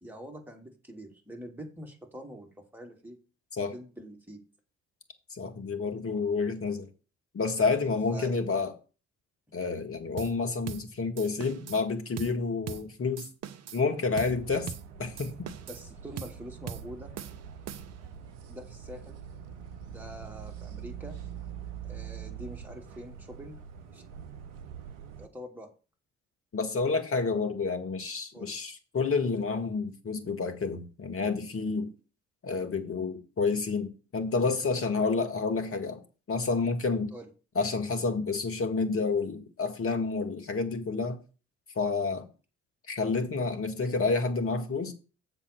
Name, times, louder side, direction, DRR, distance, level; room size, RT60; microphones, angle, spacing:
voice 1, 0.0-3.2 3.6-4.4 8.1-8.4 15.7-17.1 18.5-19.2 19.8-21.1 21.9-23.6 23.9-24.0 25.2-25.7 28.3-28.5 37.1-37.3, equal, 5° right, 2.7 m, -45 dB
voice 2, 5.3-6.9 7.3-8.7 9.5-13.3 13.7-14.7 15.0-15.5 26.5-31.9 32.4-36.0 36.3-37.1 37.6-41.2 41.8-42.3 42.9-44.9, left 4 dB, 40° left, 1.7 m, -29 dB
sound 1, 10.2-10.4 10.7-10.9 11.2-11.8 12.2-12.4 12.7-12.9 13.2-13.8 14.2-14.4 14.7-14.9 15.2-15.9 16.2-16.4 16.7-16.9 17.2-18.1, right 8 dB, 50° right, 0.8 m, -40 dB
sound 2, 14.1-25.3, right 8 dB, 70° right, 0.9 m, -44 dB
7.3 x 4.4 x 6.7 m
figure-of-eight pair, 45°, 35 cm